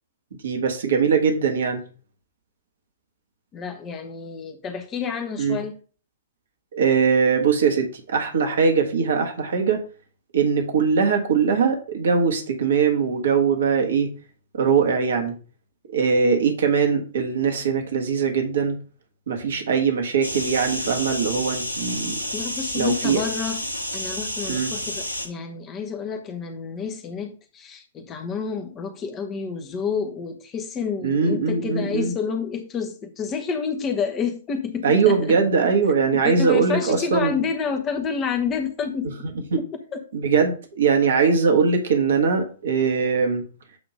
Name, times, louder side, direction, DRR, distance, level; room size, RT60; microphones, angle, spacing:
voice 1, 0.4-1.8 5.4-5.6 6.7-9.8 10.3-14.1 14.5-15.3 15.8-18.8 19.3-22.2 22.7-23.2 24.5-24.7 31.0-32.1 34.8-37.4 39.5-39.6 40.1-43.4, right 5 dB, 60° right, 4 dB, 1.5 m, -21 dB
voice 2, 3.5-5.7 22.3-23.6 23.9-35.4 36.1-39.1 39.9-40.0, left 6 dB, 20° left, 7 dB, 1.1 m, -29 dB
sound 1, 20.2-25.3, left 1 dB, 85° left, 1.5 m, -30 dB
8.7 x 3.0 x 5.0 m, 0.39 s
figure-of-eight pair, 110°, 0 cm